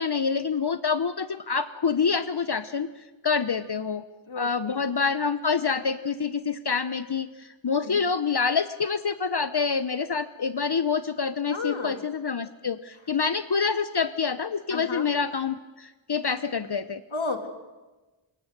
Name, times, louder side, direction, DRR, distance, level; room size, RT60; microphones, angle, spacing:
voice 1, 0.0-4.0 4.4-17.0, left 5 dB, 50° left, 12 dB, 0.8 m, -27 dB
voice 2, 4.3-4.8 7.8-8.1 11.5-12.0 14.7-15.1 17.1-17.5, left 3 dB, 65° left, 4 dB, 2.9 m, -33 dB
25.5 x 22.0 x 6.7 m, 1.2 s
wide cardioid pair, 45°, 49 cm